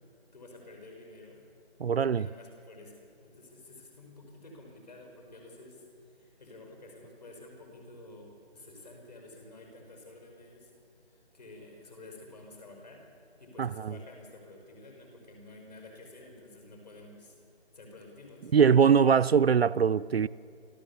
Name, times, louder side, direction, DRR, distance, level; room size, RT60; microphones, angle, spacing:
voice 1, 0.3-1.5 2.1-5.8 6.1-10.7 11.1-13.0 13.4-17.3 17.7-18.5, left 2 dB, 40° left, 5.3 m, -50 dB
voice 2, 1.8-2.3 13.6-14.0 18.5-20.3, right 7 dB, 65° right, 0.5 m, -22 dB
29.0 x 13.5 x 7.1 m
figure-of-eight pair, 170°, 33 cm